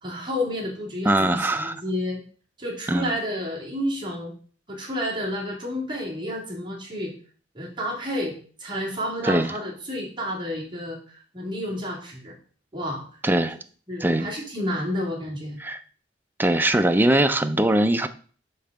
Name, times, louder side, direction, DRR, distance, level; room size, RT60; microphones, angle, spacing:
voice 1, 0.0-2.2 2.6-4.3 4.7-7.1 7.5-12.3 12.7-13.1 13.9-15.6, equal, 25° right, -3 dB, 2.1 m, -30 dB
voice 2, 1.1-1.8 2.9-3.1 9.2-9.5 13.2-13.6 14.0-14.3 15.6-15.8 16.4-18.1, right 1 dB, 10° right, 9 dB, 0.4 m, -21 dB
5.4 x 3.8 x 5.8 m, 0.43 s
head